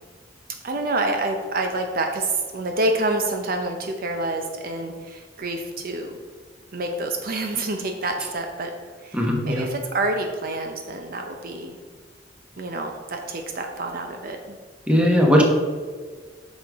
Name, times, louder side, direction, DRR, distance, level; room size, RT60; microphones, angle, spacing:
voice 1, 0.6-6.2 6.7-8.7 9.0-11.8 12.6-14.6, right 2 dB, 55° right, 4 dB, 0.7 m, -27 dB
voice 2, 9.1-9.7 14.9-15.4, equal, 5° right, -1 dB, 1.2 m, -18 dB
8.7 x 6.3 x 3.6 m, 1.5 s
head